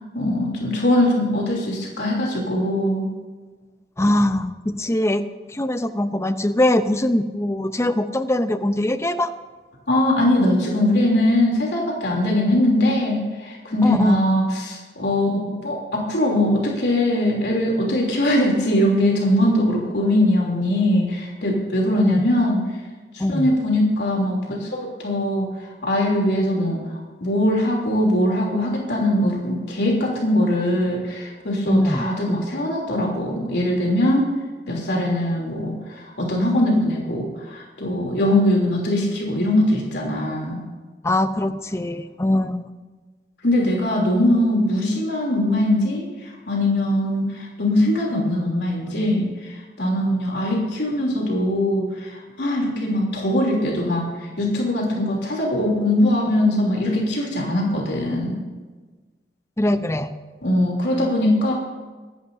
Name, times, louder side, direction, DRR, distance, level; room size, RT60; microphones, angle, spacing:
voice 1, 0.1-3.1 9.9-22.6 23.1-25.5 25.8-26.8 27.2-34.3 34.7-40.6 43.4-58.4 60.4-61.5, left 1 dB, 75° left, -2 dB, 3.2 m, -21 dB
voice 2, 4.0-5.2 5.5-9.3 13.8-14.2 22.0-22.2 23.2-23.5 31.7-32.1 41.0-42.7 59.6-60.1, left 1 dB, 15° left, 10 dB, 0.7 m, -22 dB
24.0 x 11.0 x 2.7 m, 1.3 s
head